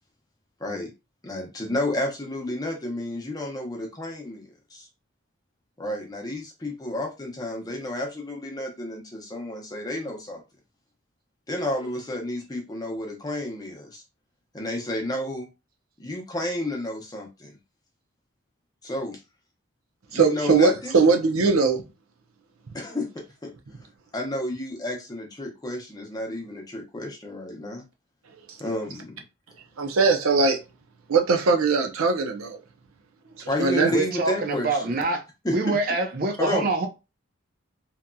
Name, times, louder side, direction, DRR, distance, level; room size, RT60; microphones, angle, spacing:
voice 1, 1.2-4.9 5.8-10.4 11.5-14.0 14.5-15.5 16.0-17.6 18.8-19.2 20.1-21.0 22.7-23.5 24.1-27.8 28.6-29.2 33.5-35.0 35.4-35.8 36.4-36.7, left 1 dB, 20° left, 0.6 m, -31 dB
voice 2, 20.1-21.8 29.8-30.6 31.1-32.6 33.6-33.9, right 4 dB, 85° right, 0.6 m, -20 dB
voice 3, 33.9-35.2 35.5-36.9, right 2 dB, 45° right, 0.6 m, -25 dB
2.8 x 2.6 x 2.2 m
head